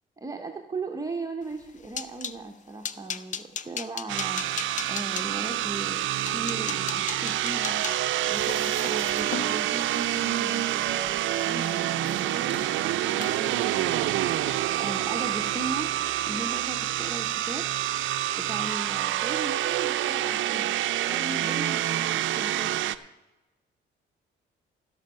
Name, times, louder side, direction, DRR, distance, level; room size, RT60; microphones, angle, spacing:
voice 1, 0.2-11.1 11.4-15.9 16.3-17.7 18.4-20.8 21.1-22.8, right 2 dB, 15° right, 3 dB, 0.9 m, -38 dB
sound 1, 1.5-2.4 2.8-5.3 5.9-6.0 6.3-10.5 10.8-11.2 11.5-11.7 12.1-12.3, left 6 dB, 40° left, 0.6 m, -37 dB
sound 2, 4.1-23.0, right 13 dB, 75° right, 0.5 m, -27 dB
sound 3, 7.4-15.7, left 4 dB, 70° left, 1.9 m, -45 dB
15.5 x 6.2 x 5.6 m, 1.1 s
cardioid pair, 90°, 20 cm